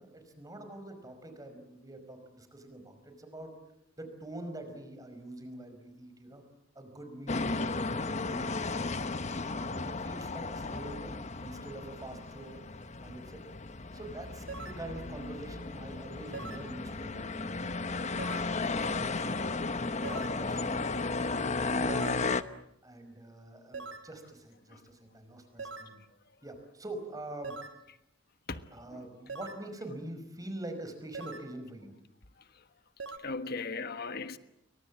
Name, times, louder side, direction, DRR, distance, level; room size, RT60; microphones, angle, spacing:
voice 1, 0.0-3.5 4.0-6.4 6.8-8.9 9.4-11.1 11.4-12.6 13.0-13.5 13.9-19.5 20.0-22.1 22.8-26.0 26.4-27.6 28.7-31.9, right 1 dB, 20° right, 5.2 m, -45 dB
sound 1, 7.3-22.4, left 3 dB, 35° left, 1.0 m, -34 dB
sound 2, 14.5-14.9 16.3-16.7 18.2-18.6 20.0-20.4 21.9-22.3 23.7-24.1 25.6-26.0 27.4-27.8 29.3-29.7 31.1-31.5 33.0-33.2, right 4 dB, 65° right, 2.1 m, -42 dB
voice 2, 33.2-34.4, left 4 dB, 50° left, 1.4 m, -37 dB
29.0 x 24.0 x 7.5 m
head